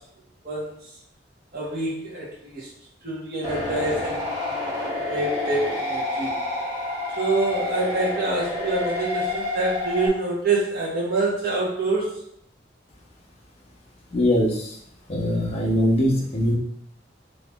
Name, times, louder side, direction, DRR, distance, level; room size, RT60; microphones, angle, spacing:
voice 1, 1.5-2.7 3.0-6.4 7.2-12.1, right 2 dB, 55° right, -4 dB, 1.1 m, -26 dB
sound 1, 3.4-10.1, left 2 dB, 25° right, 0.9 m, -28 dB
voice 2, 14.1-14.8 15.1-16.6, equal, 35° left, -3 dB, 0.6 m, -22 dB
4.2 x 2.9 x 2.3 m, 0.73 s
head